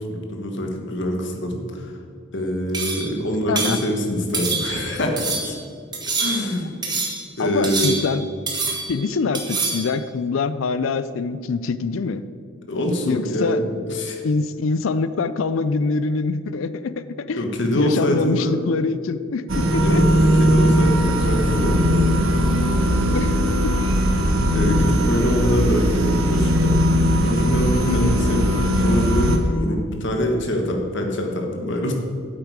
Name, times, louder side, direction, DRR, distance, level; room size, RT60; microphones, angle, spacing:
voice 1, 0.0-1.9 2.3-5.6 6.2-6.7 7.4-7.9 12.7-14.3 17.4-18.5 19.8-22.1 24.5-26.7 27.2-31.9, left 1 dB, 60° left, 3 dB, 1.3 m, -24 dB
sound 1, 2.7-3.1 3.6-3.8 4.3-4.9 5.2-5.6 5.9-6.5 6.8-7.3 7.6-8.2 8.5-9.0 9.3-9.9, right 4 dB, 20° right, 1.4 m, -26 dB
voice 2, 7.4-8.3 8.9-12.2 13.1-13.6 14.2-17.5 17.8-20.0 23.1-23.8 27.9-28.2, left 4 dB, 75° left, 14 dB, 0.4 m, -24 dB
sound 2, 19.5-29.4, equal, 90° right, 1.1 m, -19 dB
8.8 x 8.0 x 4.8 m, 2.2 s
head